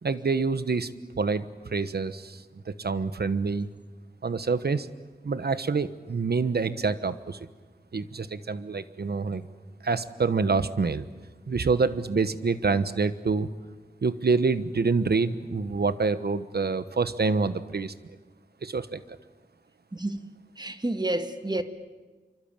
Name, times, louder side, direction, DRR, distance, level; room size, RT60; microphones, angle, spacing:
voice 1, 0.0-0.9 1.2-1.5 1.7-3.7 4.2-4.9 5.2-7.4 7.9-9.4 9.8-11.0 11.5-13.5 14.0-17.9 18.6-19.0, right 4 dB, 90° right, 1.1 m, -26 dB
voice 2, 20.6-21.6, right 1 dB, 25° right, 1.8 m, -29 dB
27.0 x 25.0 x 8.9 m
wide cardioid pair, 75°, 16 cm